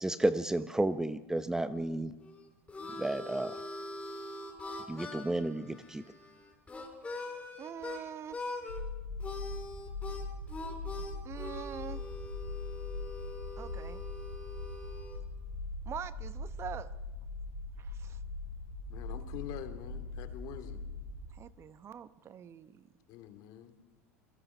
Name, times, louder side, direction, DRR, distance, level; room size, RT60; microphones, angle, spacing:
voice 1, 0.0-2.1 3.0-3.6 4.9-6.0, right 1 dB, 5° right, 12 dB, 0.9 m, -32 dB
Harmonica, 2.2-8.0 8.3-8.8 9.2-15.2, left 2 dB, 15° left, 5.3 m, -43 dB
voice 2, 7.6-8.4 11.2-12.0 13.6-14.0 15.8-16.9 17.8-18.2 21.3-22.8, right 9 dB, 35° right, 13 dB, 1.2 m, -44 dB
sound 1, 8.7-21.3, left 3 dB, 90° left, 5.7 m, -41 dB
voice 3, 18.9-20.8 23.1-23.7, left 12 dB, 50° left, 9 dB, 2.8 m, -45 dB
27.5 x 22.5 x 5.7 m, 1.1 s
hypercardioid pair, 80°, 8 cm